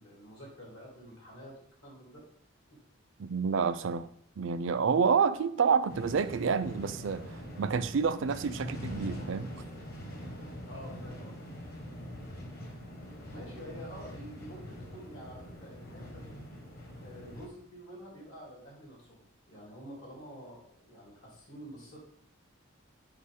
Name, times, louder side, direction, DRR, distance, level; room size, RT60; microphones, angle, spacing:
voice 1, 0.0-2.2 2.7-2.8 10.7-11.5 13.3-16.4 17.0-22.1, equal, 70° left, 2.8 m, -48 dB
voice 2, 3.2-4.1 4.4-9.5, right 6 dB, 65° right, 0.4 m, -28 dB
sound 1, 5.9-17.5, equal, 45° left, 1.4 m, -43 dB
6.5 x 4.6 x 3.6 m
head